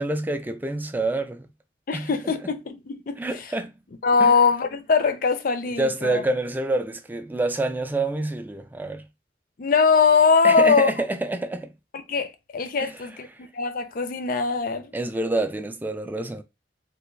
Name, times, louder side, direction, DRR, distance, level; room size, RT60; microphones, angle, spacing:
voice 1, 0.0-1.5 1.9-2.1 3.2-3.7 4.2-4.3 5.8-9.1 10.4-11.7 12.8-12.9 13.3-13.4 14.9-16.4, right 2 dB, 10° right, 0.3 m, -27 dB
voice 2, 1.9-3.2 4.0-6.2 9.6-10.9 12.1-14.9, left 5 dB, 50° left, 0.5 m, -21 dB
3.4 x 2.4 x 3.2 m
head